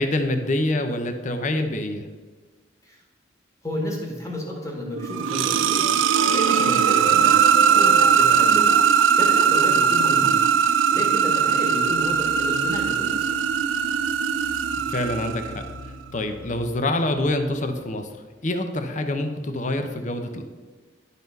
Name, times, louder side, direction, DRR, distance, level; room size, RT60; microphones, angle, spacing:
voice 1, 0.0-2.1 7.1-7.3 10.2-10.4 14.8-18.1 18.4-20.4, left 1 dB, 40° left, 7 dB, 0.7 m, -26 dB
voice 2, 3.6-5.9 6.3-8.7 9.2-10.3 10.9-13.3, equal, 15° left, -1 dB, 1.8 m, -31 dB
sound 1, 4.9-15.7, right 7 dB, 85° right, 0.4 m, -20 dB
sound 2, 11.7-18.3, left 3 dB, 75° left, 1.2 m, -44 dB
11.0 x 4.2 x 5.3 m, 1.4 s
head